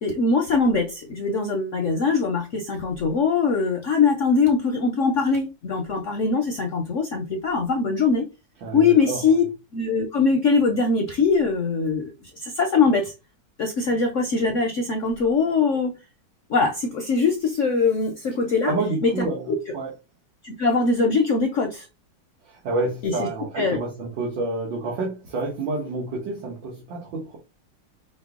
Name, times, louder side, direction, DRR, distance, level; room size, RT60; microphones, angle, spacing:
voice 1, 0.0-8.3 8.7-9.4 9.7-13.1 13.6-16.0 16.5-18.7 19.0-19.6 20.4-21.9 23.0-23.1 23.6-23.8, left 4 dB, 65° left, 0.7 m, -22 dB
voice 2, 8.6-9.3 18.6-19.9 22.5-27.4, right 3 dB, 90° right, 1.8 m, -29 dB
5.3 x 2.0 x 3.6 m
omnidirectional pair, 2.0 m